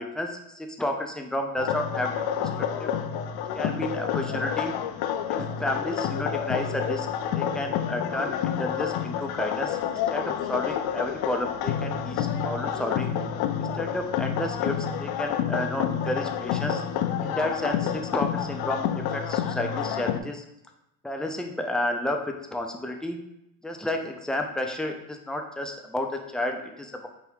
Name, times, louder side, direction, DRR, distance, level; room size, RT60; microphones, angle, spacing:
voice 1, 0.0-2.1 2.4-2.5 2.8-2.9 3.5-4.7 5.3-7.1 7.3-13.1 13.6-16.8 17.2-20.4 21.0-23.2 23.6-27.1, left 1 dB, ahead, 3 dB, 0.4 m, -31 dB
sound 1, 1.6-20.2, left 8 dB, 65° left, 0.5 m, -29 dB
4.7 x 2.6 x 3.3 m, 0.84 s
supercardioid pair, 100°, 41 cm